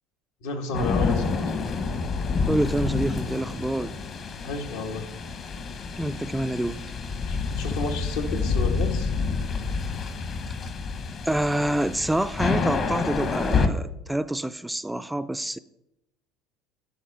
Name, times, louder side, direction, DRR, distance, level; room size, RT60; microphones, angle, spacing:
voice 1, 0.4-1.5 4.4-5.0 7.2-9.1, left 3 dB, 80° left, 3 dB, 1.6 m, -31 dB
sound 1, 0.7-13.7, left 4 dB, 40° left, 1.1 m, -28 dB
voice 2, 2.5-4.0 6.0-6.8 11.3-15.6, right 1 dB, 5° right, 12 dB, 0.3 m, -27 dB
11.5 x 4.3 x 6.0 m, 0.86 s
supercardioid pair, 105°, 0 cm